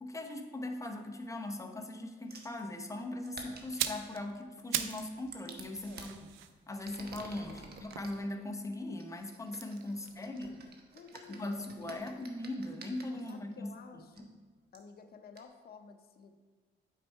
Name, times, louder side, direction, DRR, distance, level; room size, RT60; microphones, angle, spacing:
voice 1, 0.0-6.3 6.7-10.6 11.3-13.7 14.2-14.3, left 1 dB, 15° left, 3 dB, 0.9 m, -40 dB
sound 1, 2.3-2.6 3.2-4.1 4.8-6.1 6.7-8.2 9.0-13.3 14.1-14.2 14.7-14.8 15.3-15.4, right 4 dB, 55° right, 1.0 m, -51 dB
Lighting smoking Cigarette, 3.6-5.1 5.4-8.7 9.5-11.5 11.8-12.0, right 10 dB, 85° right, 0.5 m, -41 dB
voice 2, 5.8-6.1 7.5-7.7 9.9-10.5 10.9-12.1 13.3-14.3 14.7-16.4, left 5 dB, 50° left, 6 dB, 0.7 m, -54 dB
8.3 x 4.5 x 4.5 m, 1.4 s
cardioid pair, 90°, 20 cm